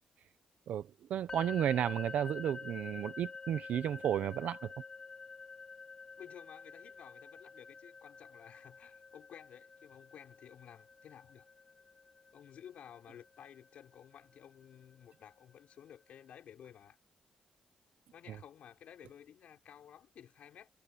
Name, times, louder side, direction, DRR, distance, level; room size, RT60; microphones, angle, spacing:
voice 1, 0.7-4.7 18.3-18.4, right 10 dB, 85° right, 1.0 m, -33 dB
sound 1, 1.3-15.1, left 4 dB, 35° left, 4.6 m, -49 dB
voice 2, 6.2-11.5 12.3-17.0 18.1-20.7, left 9 dB, 75° left, 4.4 m, -54 dB
cardioid pair, 120°, 2 cm